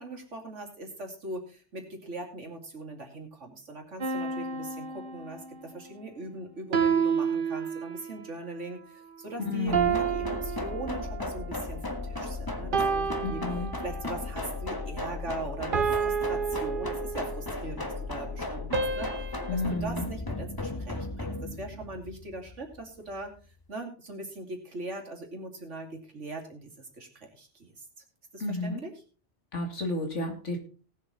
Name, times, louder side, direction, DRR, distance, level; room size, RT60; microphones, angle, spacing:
voice 1, 0.0-19.3 19.5-23.3 23.7-27.8 28.3-29.0, right 2 dB, 90° right, 2 dB, 2.9 m, -40 dB
sound 1, 4.0-5.7 6.7-8.2 9.7-11.4 12.7-14.2 15.7-17.5 18.7-19.8, right 6 dB, 50° right, 1.1 m, -30 dB
voice 2, 9.4-9.9 13.2-13.7 19.5-20.0 28.4-28.8 29.5-30.6, left 2 dB, 85° left, 4 dB, 2.7 m, -31 dB
sound 2, 9.7-23.4, left 2 dB, 20° left, 1.4 m, -36 dB
18.5 x 7.1 x 4.1 m, 0.37 s
omnidirectional pair, 1.2 m